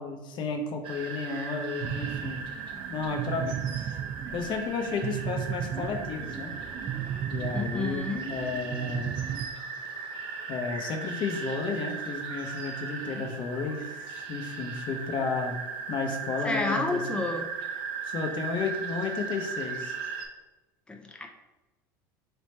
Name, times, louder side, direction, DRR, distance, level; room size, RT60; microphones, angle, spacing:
voice 1, 0.0-2.4 2.9-3.9 4.3-6.5 7.3-9.2 10.5-15.6 15.9-17.0 18.0-19.9, left 4 dB, 50° left, 3 dB, 0.8 m, -32 dB
sound 1, 0.8-20.3, right 5 dB, 55° right, 0.7 m, -37 dB
sound 2, 1.8-9.5, right 10 dB, 40° right, 0.4 m, -35 dB
voice 2, 7.5-8.2 16.4-17.5 20.9-21.3, left 3 dB, 10° left, 3 dB, 0.5 m, -30 dB
3.4 x 2.9 x 4.3 m, 1.1 s
hypercardioid pair, 80°, 10 cm